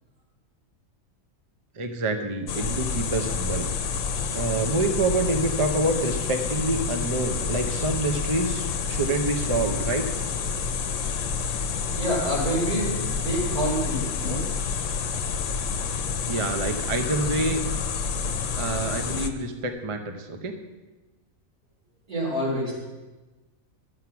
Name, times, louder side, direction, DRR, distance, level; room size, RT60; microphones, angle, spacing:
voice 1, 1.8-3.7 4.3-10.0 16.3-17.6 18.5-20.5, right 2 dB, 30° right, 6 dB, 0.8 m, -27 dB
sound 1, 2.5-19.3, left 5 dB, 65° left, 1.1 m, -29 dB
voice 2, 12.0-14.4 22.1-22.7, equal, 90° right, -5 dB, 4.6 m, -27 dB
11.5 x 8.1 x 5.9 m, 1.2 s
omnidirectional pair, 1.5 m